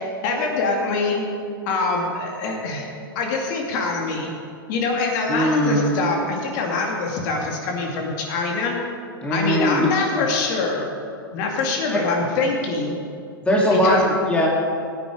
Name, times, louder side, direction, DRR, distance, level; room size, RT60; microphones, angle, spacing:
voice 1, 0.2-1.2 1.7-2.9 3.1-4.3 4.7-8.7 9.3-10.9 11.3-12.9 13.7-14.0, left 3 dB, 50° left, 0 dB, 2.5 m, -24 dB
voice 2, 5.3-5.9 9.2-9.9 11.9-12.0 13.4-14.5, equal, 10° left, -3 dB, 2.2 m, -19 dB
15.5 x 9.3 x 5.1 m, 2.5 s
hypercardioid pair, 120°, 13 cm